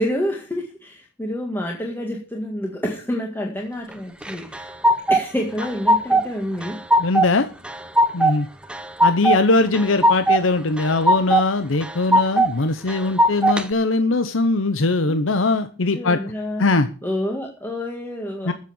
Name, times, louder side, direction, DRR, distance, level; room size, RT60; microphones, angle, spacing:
voice 1, 0.0-4.7 5.1-6.8 15.1-15.2 15.9-16.7 17.0-18.5, equal, 10° left, 1 dB, 1.8 m, -28 dB
sound 1, 4.2-5.2 5.6-6.3 6.6-7.3 7.6-8.4 8.7-9.4 9.7-10.4 10.8-11.5 11.8-12.5 12.9-13.6, right 1 dB, 5° right, 1.0 m, -18 dB
voice 2, 7.0-7.5 8.1-8.5 9.0-16.2 16.6-16.9 18.5-18.6, left 3 dB, 85° left, 10 dB, 0.9 m, -20 dB
13.5 x 7.5 x 7.2 m, 0.37 s
head